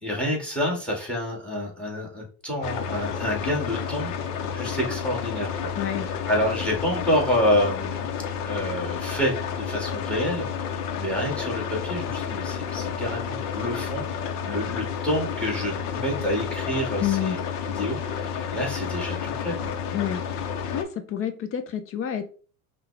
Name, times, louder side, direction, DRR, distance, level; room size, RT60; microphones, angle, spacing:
voice 1, 0.0-4.1 4.5-5.7 6.3-8.0 8.4-10.5 11.0-17.4 17.7-19.5, equal, ahead, -1 dB, 2.0 m, -28 dB
sound 1, 2.6-20.8, left 7 dB, 80° left, 0.9 m, -31 dB
voice 2, 5.8-6.1 17.0-17.4 19.9-20.2 20.7-22.3, left 10 dB, 30° left, 9 dB, 0.5 m, -28 dB
5.5 x 2.4 x 3.3 m, 0.40 s
supercardioid pair, 110°, 45 cm